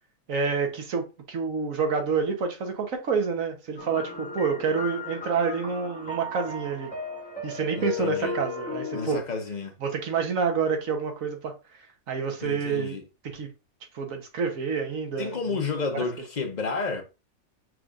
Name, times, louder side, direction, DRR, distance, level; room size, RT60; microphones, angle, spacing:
voice 1, 0.3-6.9 7.4-9.2 9.8-11.5 12.1-13.0 13.2-13.5 13.9-15.6 15.9-16.0, right 5 dB, 65° right, 1.4 m, -28 dB
sound 1, 3.8-9.2, left 4 dB, 5° left, 0.8 m, -35 dB
voice 2, 7.8-8.3 8.9-9.7 12.4-13.0 15.2-17.0, left 4 dB, 35° left, 0.9 m, -31 dB
6.2 x 3.4 x 2.5 m
omnidirectional pair, 1.5 m